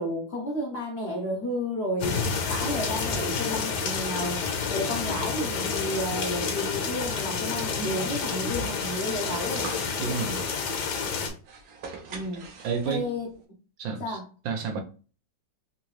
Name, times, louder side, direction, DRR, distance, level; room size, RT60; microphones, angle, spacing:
voice 1, 0.0-4.4 4.7-9.7 12.1-12.5 12.8-13.3 14.0-14.2, equal, 55° left, 0.7 m, -32 dB
sound 1, 2.0-11.3, left 5 dB, 70° left, 1.2 m, -29 dB
sound 2, 8.0-13.3, right 4 dB, 65° right, 1.0 m, -44 dB
voice 2, 10.0-10.5 12.6-13.1 13.8-14.2 14.4-14.8, right 5 dB, 85° right, 1.4 m, -30 dB
3.7 x 2.7 x 3.0 m
omnidirectional pair, 2.0 m